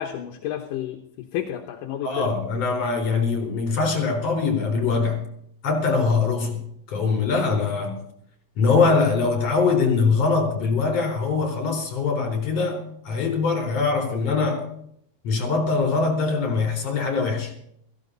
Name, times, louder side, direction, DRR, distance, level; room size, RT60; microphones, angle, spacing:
voice 1, 0.0-2.3, left 11 dB, 70° left, 2.5 m, -31 dB
voice 2, 2.0-5.2 5.6-6.6 6.9-8.0 8.6-14.6 15.2-17.5, left 4 dB, 45° left, 5.0 m, -22 dB
16.5 x 16.0 x 4.0 m
omnidirectional pair, 4.2 m